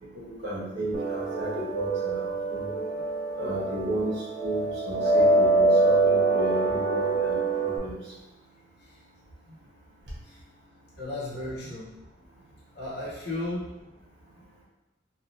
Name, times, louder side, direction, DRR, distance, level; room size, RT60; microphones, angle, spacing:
voice 1, 0.1-2.7 3.4-4.1 4.4-7.9, right 1 dB, 65° right, -6 dB, 1.1 m, -33 dB
sound 1, 0.9-7.8, right 2 dB, 45° right, 0.6 m, -25 dB
voice 2, 11.0-11.9 12.7-13.9, left 1 dB, 60° left, -6 dB, 1.0 m, -35 dB
3.3 x 2.4 x 2.7 m, 1.1 s
head